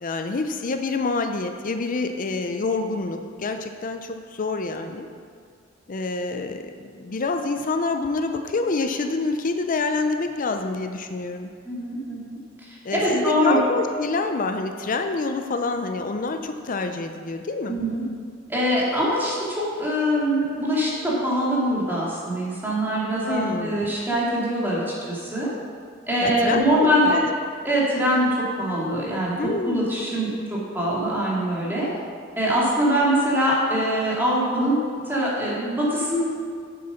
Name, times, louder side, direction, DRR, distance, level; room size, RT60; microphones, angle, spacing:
voice 1, 0.0-5.1 5.9-11.5 12.8-17.8 23.3-23.8 26.2-27.3 29.4-29.9, left 3 dB, 45° left, 6 dB, 0.5 m, -27 dB
voice 2, 11.6-12.4 12.9-13.6 17.7-18.0 18.5-25.5 26.1-27.2 27.6-31.9 32.4-34.8 35.1-36.2, equal, 10° right, -7 dB, 2.4 m, -23 dB
7.8 x 7.7 x 5.8 m, 2.1 s
head